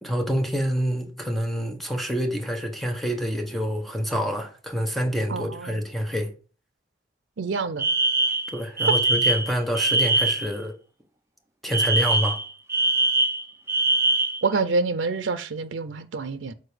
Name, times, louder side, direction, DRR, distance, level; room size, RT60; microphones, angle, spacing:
voice 1, 0.0-6.3 8.5-10.7 11.6-12.4, equal, ahead, 1.1 m, -27 dB
voice 2, 5.3-5.8 7.4-7.9 14.4-16.5, right 4 dB, 80° right, 0.5 m, -27 dB
Alarm, 7.8-10.5 11.7-14.4, right 2 dB, 15° right, 0.5 m, -22 dB
6.8 x 4.1 x 4.9 m
head